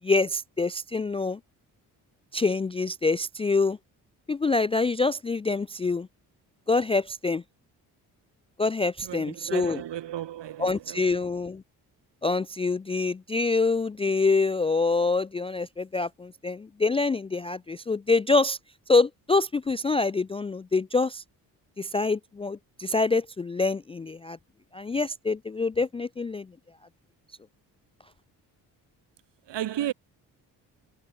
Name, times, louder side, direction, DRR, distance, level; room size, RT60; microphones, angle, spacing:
voice 1, 0.0-1.4 2.3-3.8 4.3-6.1 6.7-7.4 8.6-9.8 10.6-11.6 12.2-18.6 18.9-21.2 21.8-24.4 24.7-26.5, left 3 dB, 15° left, 0.3 m, -25 dB
voice 2, 9.0-11.3 29.4-29.9, right 12 dB, 65° right, 2.9 m, -34 dB
hypercardioid pair, 45°, 46 cm